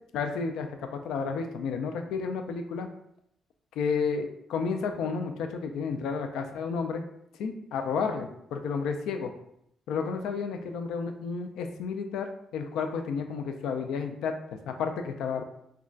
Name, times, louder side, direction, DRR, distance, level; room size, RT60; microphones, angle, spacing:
voice 1, 0.1-2.9 3.8-7.0 7.4-9.3 9.9-12.3 12.5-15.4, left 5 dB, 85° left, 6 dB, 0.3 m, -31 dB
3.7 x 2.2 x 2.3 m, 0.75 s
cardioid pair, 90°, 0 cm